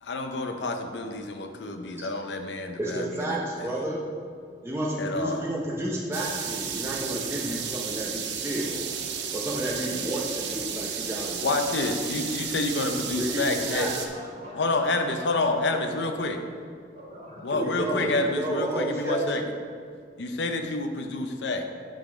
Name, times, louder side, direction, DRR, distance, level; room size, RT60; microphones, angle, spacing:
voice 1, 0.0-3.7 5.0-5.4 11.4-13.9 14.5-16.4 17.4-19.4 20.2-21.7, left 2 dB, 85° left, 5 dB, 0.6 m, -28 dB
voice 2, 2.8-4.0 4.6-8.8 9.3-11.8 13.2-13.9 17.5-19.5, right 1 dB, 15° right, -4 dB, 0.8 m, -31 dB
sound 1, 6.1-14.1, right 7 dB, 75° right, 0.6 m, -33 dB
voice 3, 13.3-15.9 16.2-16.3 16.9-17.5 17.7-18.0, equal, 40° right, -5 dB, 1.8 m, -44 dB
8.8 x 3.9 x 5.1 m, 2.1 s
head